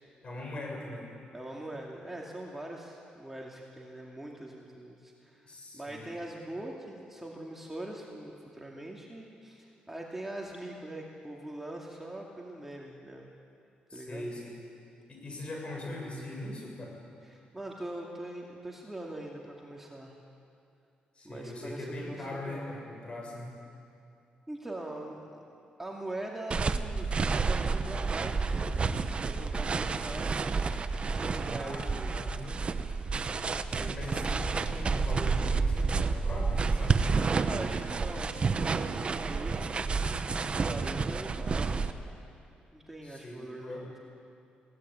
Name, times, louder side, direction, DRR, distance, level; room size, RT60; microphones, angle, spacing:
voice 1, 0.2-1.1 5.5-6.1 13.9-14.6 15.1-17.0 21.2-23.6 31.5-32.5 33.7-37.0 43.0-43.9, left 1 dB, 35° left, 0 dB, 6.8 m, -41 dB
voice 2, 1.3-5.5 5.7-13.3 13.9-14.3 17.3-20.1 21.2-22.7 24.5-25.2 25.8-30.3 31.0-32.6 37.4-39.9 40.5-42.0 42.7-44.0, right 1 dB, 10° right, -1 dB, 2.4 m, -42 dB
sound 1, 26.5-41.9, right 4 dB, 35° right, 1.0 m, -30 dB
21.5 x 17.0 x 8.9 m, 2.6 s
cardioid pair, 95°, 3 cm